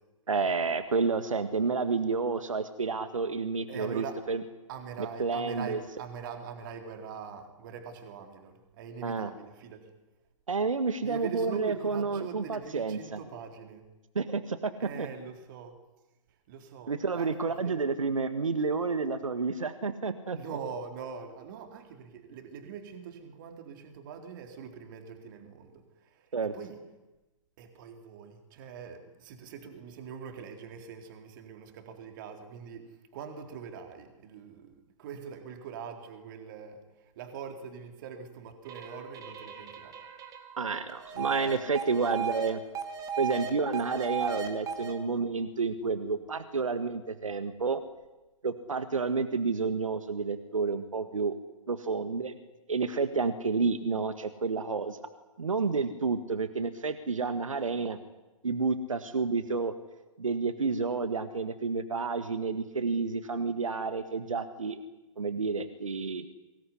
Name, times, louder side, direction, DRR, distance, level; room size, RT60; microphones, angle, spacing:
voice 1, 0.3-4.4 5.0-5.8 9.0-9.3 10.5-13.2 14.1-14.7 15.0-15.1 16.9-20.4 26.3-26.5 40.6-42.6 43.2-47.8 48.4-51.3 51.7-52.3 52.7-55.0 55.4-58.0 58.4-59.7 60.2-64.8 65.2-66.2, right 4 dB, 70° right, 10 dB, 1.7 m, -30 dB
voice 2, 3.7-4.2 4.7-9.9 11.0-13.8 14.8-15.8 16.5-17.8 20.3-26.3 26.5-26.8 27.6-40.0 41.2-41.5 42.0-42.1, right 6 dB, 35° right, 5 dB, 4.0 m, -43 dB
sound 1, 38.7-42.5 42.7-44.9, right 6 dB, 20° right, 2.8 m, -36 dB
24.5 x 20.0 x 9.9 m, 1.1 s
figure-of-eight pair, 125°, 18 cm